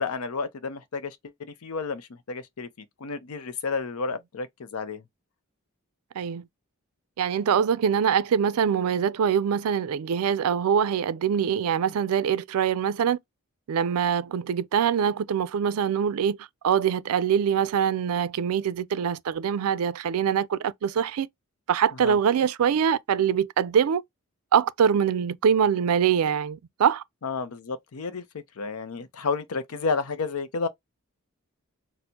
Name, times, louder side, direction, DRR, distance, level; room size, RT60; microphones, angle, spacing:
voice 1, 0.0-2.7 3.0-5.0 22.0-22.2 27.2-30.7, left 4 dB, 80° left, 0.6 m, -31 dB
voice 2, 7.2-13.2 13.7-21.3 21.7-24.0 24.5-27.0, right 8 dB, 85° right, 0.4 m, -24 dB
4.3 x 2.0 x 2.7 m
head